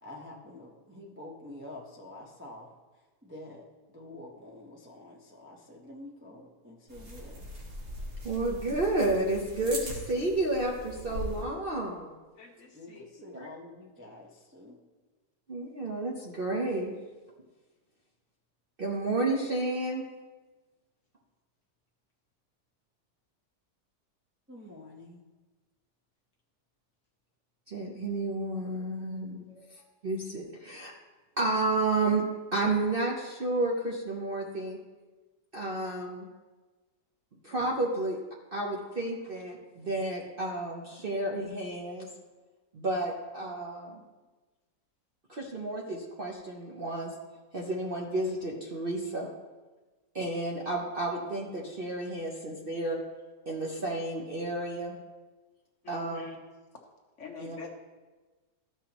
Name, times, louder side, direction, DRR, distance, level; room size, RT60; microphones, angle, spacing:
voice 1, 0.0-2.8 3.2-7.5 12.7-14.8 24.5-25.2, left 1 dB, 10° right, -3 dB, 0.6 m, -47 dB
sound 1, 6.9-11.4, equal, 70° right, 2.5 m, -40 dB
voice 2, 8.2-12.1 13.3-13.5 15.5-16.9 18.8-20.0 27.7-29.4 30.0-30.9 31.4-32.2 32.5-34.8 35.5-36.2 37.4-38.2 38.5-42.1 42.7-44.0 45.3-47.1 47.5-49.3 50.1-53.0 53.5-54.9 55.9-56.3 57.4-57.6, right 2 dB, 45° right, -2 dB, 0.8 m, -31 dB
voice 3, 12.4-13.1 13.4-13.5 29.6-29.7 55.8-56.4 57.2-57.7, left 6 dB, 50° left, 1 dB, 1.2 m, -46 dB
14.0 x 5.7 x 3.0 m, 1.2 s
omnidirectional pair, 1.9 m